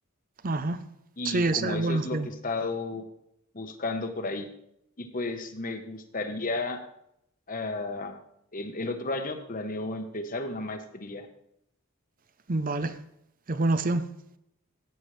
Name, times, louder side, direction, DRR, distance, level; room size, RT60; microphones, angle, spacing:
voice 1, 0.4-0.8 1.2-2.3 12.5-12.9 13.5-14.1, right 2 dB, 40° right, 0.6 m, -26 dB
voice 2, 1.2-3.0 3.5-4.5 5.0-6.8 7.5-8.2 8.5-11.3, left 2 dB, 40° left, 1.1 m, -33 dB
15.0 x 9.2 x 3.3 m
head